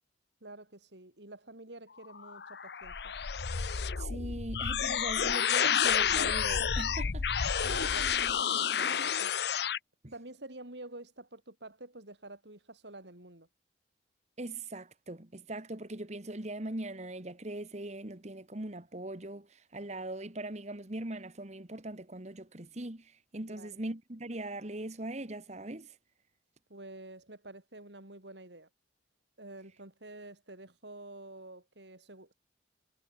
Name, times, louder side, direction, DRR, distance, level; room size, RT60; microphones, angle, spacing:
voice 1, 0.4-3.1 7.6-9.7 10.1-13.5 23.5-23.7 26.7-28.7 29.4-32.3, right 2 dB, 70° right, 4.4 m, -49 dB
sound 1, 2.1-9.8, left 7 dB, 60° left, 0.7 m, -30 dB
voice 2, 4.0-7.3 10.0-10.1 14.4-26.0, right 1 dB, 40° right, 1.7 m, -40 dB
head